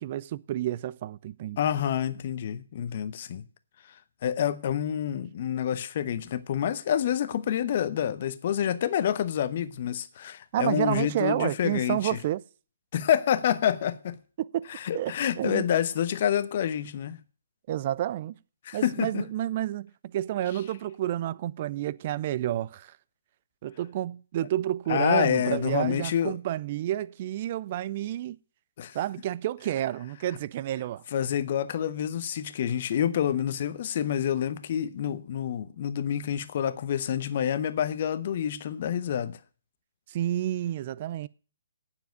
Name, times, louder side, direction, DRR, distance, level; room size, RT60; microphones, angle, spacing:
voice 1, 0.0-1.6 10.5-12.4 14.4-15.7 17.7-18.4 18.7-22.9 23.6-28.4 28.9-31.0 40.1-41.3, right 13 dB, 40° right, 0.5 m, -30 dB
voice 2, 1.6-3.4 3.8-12.2 12.9-14.1 14.7-17.2 18.6-19.3 24.9-26.4 28.8-29.0 31.1-39.4, left 9 dB, 45° left, 0.9 m, -28 dB
9.3 x 7.3 x 9.0 m
figure-of-eight pair, 140°, 0 cm